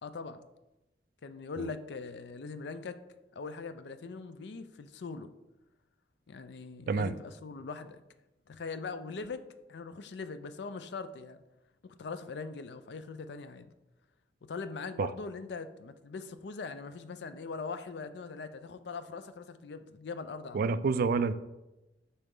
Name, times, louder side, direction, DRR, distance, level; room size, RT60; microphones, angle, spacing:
voice 1, 0.0-0.4 1.2-3.0 3.3-5.3 6.3-8.0 8.5-9.4 9.7-11.4 11.8-13.7 14.4-20.8, left 4 dB, 65° left, 11 dB, 0.4 m, -41 dB
voice 2, 20.5-21.3, right 4 dB, 50° right, 13 dB, 0.3 m, -28 dB
6.9 x 4.3 x 3.7 m, 0.98 s
head